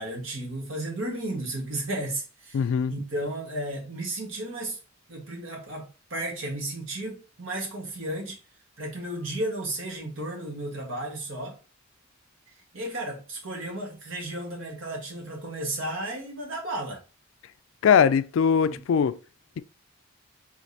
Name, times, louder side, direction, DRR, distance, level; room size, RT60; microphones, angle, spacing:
voice 1, 0.0-2.6 2.9-4.8 5.1-8.4 8.8-11.6 12.7-17.0 18.7-18.8, right 1 dB, 70° right, 1.6 m, -33 dB
voice 2, 2.5-2.9 17.8-19.2 19.6-19.7, left 7 dB, 65° left, 0.3 m, -21 dB
5.0 x 3.5 x 2.8 m
head